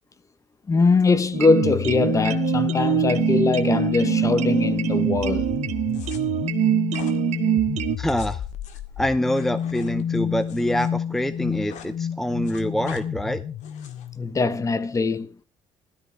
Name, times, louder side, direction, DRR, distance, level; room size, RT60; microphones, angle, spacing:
voice 1, 0.7-5.5 14.2-15.4, left 3 dB, 25° left, 1.0 m, -22 dB
sound 1, 1.3-8.0, right 13 dB, 65° right, 1.1 m, -24 dB
sound 2, 1.4-14.2, left 8 dB, 55° left, 0.9 m, -29 dB
sound 3, 5.9-6.2 6.9-7.2 7.9-10.9 11.2-11.9 12.2-13.0 13.6-14.1, left 8 dB, 75° left, 2.0 m, -44 dB
voice 2, 8.0-8.4 9.0-13.4, equal, 5° left, 0.6 m, -25 dB
16.5 x 13.0 x 3.5 m
cardioid pair, 115°, 13 cm